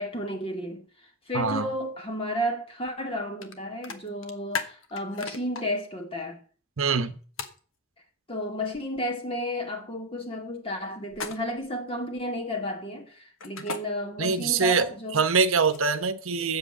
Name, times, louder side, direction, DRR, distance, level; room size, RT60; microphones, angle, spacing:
voice 1, 0.0-6.4 8.3-15.2, equal, 25° left, 2.4 m, -32 dB
voice 2, 1.3-1.7 6.8-7.2 14.2-16.6, right 5 dB, 65° right, 1.0 m, -24 dB
sound 1, 3.4-3.5 3.8-5.6 7.4-7.6 11.1-11.7 13.4-13.8 15.2-16.1, left 5 dB, 65° left, 1.4 m, -35 dB
8.1 x 7.4 x 8.6 m
head